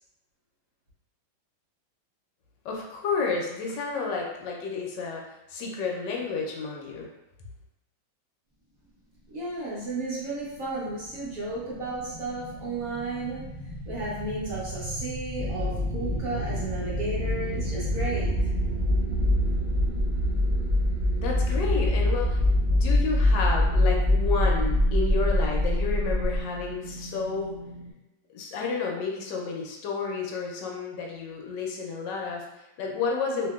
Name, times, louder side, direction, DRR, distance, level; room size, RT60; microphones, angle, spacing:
voice 1, 2.6-5.2 5.5-7.1 21.2-22.4 22.7-27.6 28.3-33.5, left 4 dB, 75° left, -1 dB, 1.1 m, -31 dB
voice 2, 9.3-13.4 13.9-18.3, right 2 dB, 65° right, -7 dB, 0.9 m, -33 dB
sound 1, 10.5-26.4, left 1 dB, 80° right, 0.4 m, -26 dB
sound 2, 15.4-27.9, left 1 dB, 35° right, 1.0 m, -35 dB
2.8 x 2.7 x 2.3 m, 0.91 s
omnidirectional pair, 2.1 m